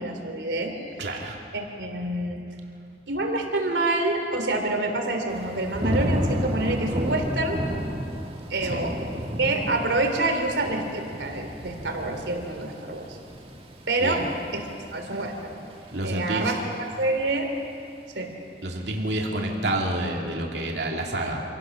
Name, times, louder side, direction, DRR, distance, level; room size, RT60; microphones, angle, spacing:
voice 1, 0.0-1.1 1.5-2.5 3.1-7.6 8.5-9.1 9.4-13.2 13.9-14.2 14.5-14.6 14.9-15.6 16.0-17.5 18.1-18.3, right 2 dB, 90° right, 4 dB, 3.0 m, -27 dB
voice 2, 1.0-1.4 8.6-8.8 14.0-14.2 15.9-16.6 18.6-21.4, right 1 dB, 70° right, -1 dB, 2.6 m, -28 dB
Thunder / Rain, 5.3-16.2 16.6-17.1, equal, 30° right, 2.0 m, -32 dB
26.5 x 17.5 x 6.3 m, 2.5 s
head